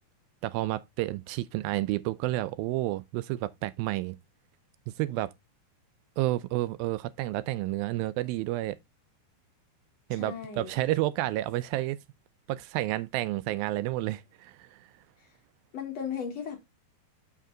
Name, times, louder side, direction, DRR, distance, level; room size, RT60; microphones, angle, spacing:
voice 1, 0.4-4.2 5.0-5.3 6.2-8.8 10.1-12.0 12.5-14.9, right 16 dB, 80° right, 2.2 m, -30 dB
voice 2, 10.2-10.7 15.7-16.6, left 7 dB, 60° left, 1.8 m, -36 dB
6.9 x 5.9 x 3.7 m
omnidirectional pair, 4.5 m